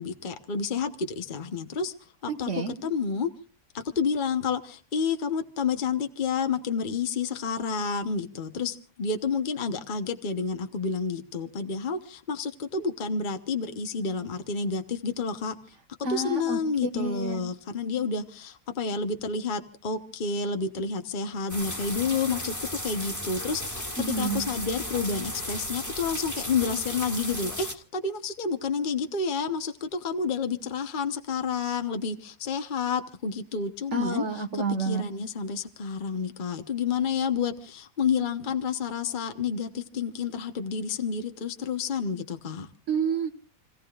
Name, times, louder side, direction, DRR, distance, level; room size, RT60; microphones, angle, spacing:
voice 1, 0.0-1.9 2.2-2.5 2.8-3.3 3.7-15.6 16.1-23.9 24.2-34.2 34.5-42.7, left 5 dB, 40° left, 1.1 m, -30 dB
voice 2, 2.3-2.7 16.0-17.4 24.0-24.4 33.9-35.0 42.9-43.3, right 4 dB, 60° right, 1.9 m, -29 dB
sound 1, 21.5-27.8, left 1 dB, 10° left, 1.9 m, -35 dB
29.5 x 16.5 x 2.4 m
omnidirectional pair, 1.5 m